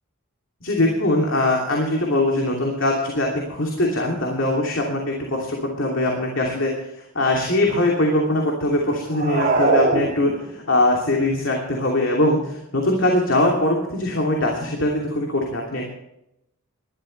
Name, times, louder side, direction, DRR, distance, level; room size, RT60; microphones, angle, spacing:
voice 1, 0.6-15.9, left 1 dB, 65° left, -1 dB, 2.8 m, -22 dB
sound 1, 9.1-10.7, right 3 dB, 40° right, 3.2 m, -21 dB
20.0 x 13.0 x 3.3 m, 0.82 s
head